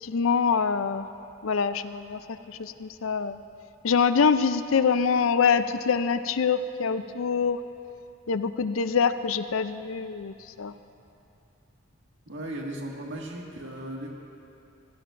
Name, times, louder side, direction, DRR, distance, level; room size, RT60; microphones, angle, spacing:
voice 1, 0.0-1.1 1.4-2.2 2.5-3.4 3.8-7.6 8.3-10.7, left 6 dB, 70° left, 12 dB, 0.5 m, -25 dB
voice 2, 12.3-14.1, right 1 dB, 60° right, -1 dB, 1.9 m, -36 dB
22.5 x 16.0 x 2.6 m, 2.7 s
head